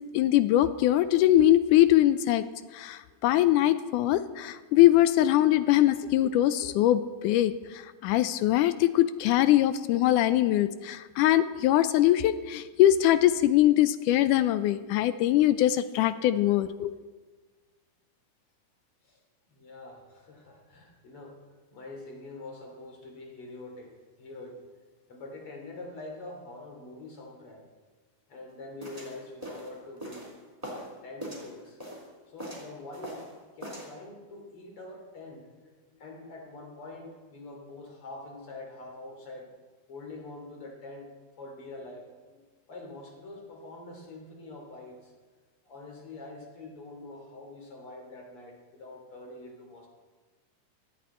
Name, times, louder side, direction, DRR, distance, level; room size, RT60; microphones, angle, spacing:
voice 1, 0.1-2.4 2.7-16.9, left 13 dB, 80° left, 13 dB, 1.9 m, -22 dB
voice 2, 19.5-21.4 21.7-24.6 25.1-27.7 28.3-30.4 30.7-31.8 32.3-33.3 33.6-39.5 39.9-41.1 41.4-42.4 42.7-45.1 45.7-49.9, left 2 dB, 40° left, 1 dB, 3.4 m, -45 dB
sound 1, 28.8-30.9 31.2-32.1 32.4-33.3 33.6-33.9, equal, 10° right, 3.4 m, -41 dB
17.5 x 13.5 x 4.4 m, 1.4 s
omnidirectional pair, 4.0 m